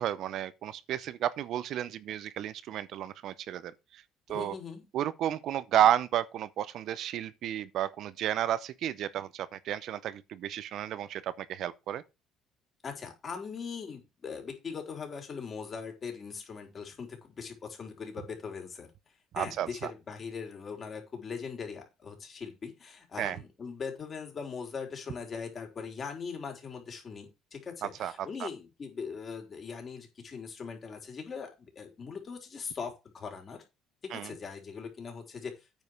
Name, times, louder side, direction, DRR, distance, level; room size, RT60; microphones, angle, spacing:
voice 1, 0.0-4.0 4.3-4.5 4.9-12.0 19.3-19.9 23.2-23.4 28.0-28.1 28.4-28.5 34.1-34.3, right 11 dB, 65° right, 0.8 m, -32 dB
voice 2, 4.3-4.8 12.8-18.9 19.3-33.6 34.1-35.7, left 5 dB, 35° left, 4.1 m, -40 dB
9.2 x 5.3 x 6.5 m
cardioid pair, 120°, 0 cm